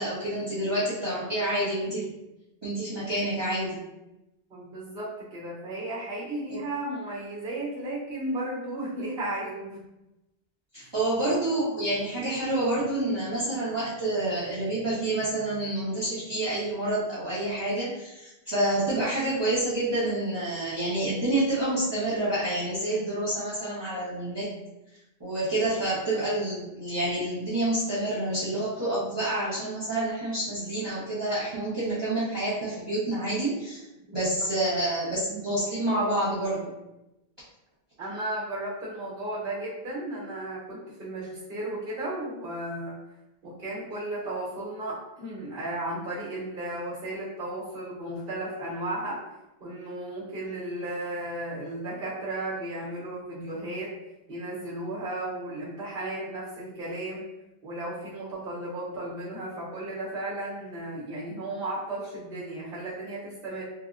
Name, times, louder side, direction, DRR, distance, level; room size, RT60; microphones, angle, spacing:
voice 1, 0.0-2.1 2.6-3.8 6.5-6.6 10.7-24.5 25.2-33.8 34.1-36.7, right 1 dB, 25° right, -13 dB, 0.8 m, -28 dB
voice 2, 4.5-9.8 10.8-10.9 34.1-34.2 38.0-43.0 43.4-49.2 49.6-53.9 54.3-57.2 57.6-63.6, right 1 dB, 65° right, -7 dB, 1.2 m, -34 dB
3.9 x 2.0 x 2.4 m, 0.94 s
omnidirectional pair, 1.0 m